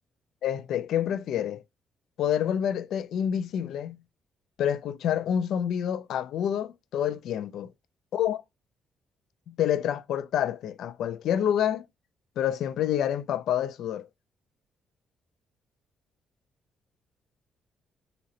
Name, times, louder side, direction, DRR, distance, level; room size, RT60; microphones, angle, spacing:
voice 1, 0.4-1.6 2.2-4.0 4.6-7.7 8.1-8.4 9.5-11.9 12.4-14.1, left 9 dB, 75° left, 0.3 m, -28 dB
3.8 x 2.0 x 2.7 m
cardioid pair, 90°, 0 cm